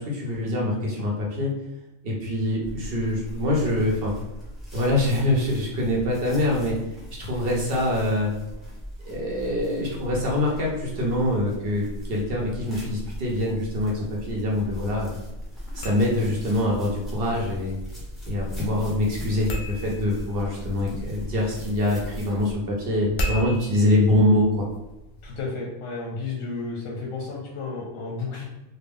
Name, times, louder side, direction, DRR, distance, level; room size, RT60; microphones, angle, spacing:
voice 1, 0.0-1.5 2.0-4.1 4.7-6.7 7.2-8.3 9.1-15.1 15.7-17.8 18.3-24.7, left 1 dB, 55° right, -2 dB, 0.9 m, -24 dB
sound 1, 2.6-22.5, equal, ahead, 0.7 m, -38 dB
sound 2, 15.6-25.4, equal, 60° left, 0.7 m, -37 dB
voice 2, 25.2-28.4, left 3 dB, 90° left, -2 dB, 1.0 m, -32 dB
3.3 x 2.1 x 3.5 m, 0.98 s
omnidirectional pair, 1.3 m